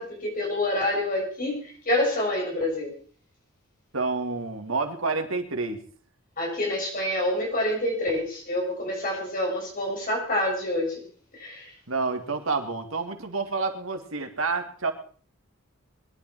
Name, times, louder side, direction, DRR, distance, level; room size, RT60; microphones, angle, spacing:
voice 1, 0.0-2.9 6.4-11.0 11.3-11.7, left 1 dB, 40° left, 0 dB, 6.9 m, -27 dB
voice 2, 3.9-5.8 11.9-14.9, right 4 dB, 85° right, 6 dB, 2.2 m, -29 dB
22.0 x 11.5 x 4.6 m, 0.43 s
head